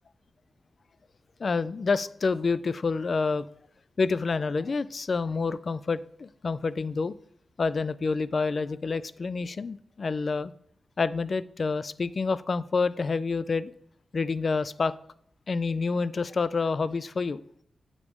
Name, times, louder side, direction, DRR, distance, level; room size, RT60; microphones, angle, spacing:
voice 1, 1.4-3.5 4.0-7.1 7.6-10.5 11.0-13.7 14.1-14.9 15.5-17.4, left 4 dB, 50° left, 16 dB, 0.3 m, -28 dB
7.9 x 4.9 x 3.6 m, 0.67 s
cardioid pair, 85°, 0 cm